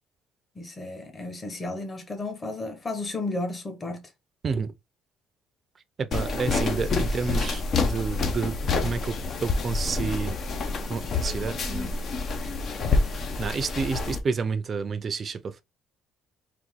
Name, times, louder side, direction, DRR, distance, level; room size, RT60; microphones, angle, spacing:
voice 1, 0.5-4.1, left 2 dB, 25° left, 1.3 m, -33 dB
voice 2, 6.0-9.2 9.4-10.4 10.9-11.9 13.4-15.6, right 5 dB, 40° right, 0.6 m, -30 dB
sound 1, 6.1-14.2, left 3 dB, 50° left, 0.9 m, -27 dB
4.1 x 2.7 x 3.7 m
cardioid pair, 95°, 0 cm